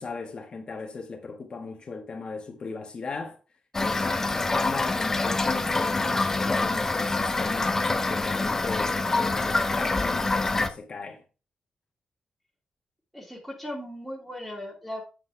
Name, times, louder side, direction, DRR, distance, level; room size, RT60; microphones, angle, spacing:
voice 1, 0.0-3.4 3.8-7.8 8.1-11.2, left 4 dB, 40° left, 1.5 m, -37 dB
Toilet flush / Fill (with liquid), 3.7-10.7, left 3 dB, 20° left, 0.7 m, -26 dB
voice 2, 13.1-15.0, left 1 dB, ahead, 2.1 m, -37 dB
7.9 x 6.5 x 3.3 m
wide cardioid pair, 150°, 2 cm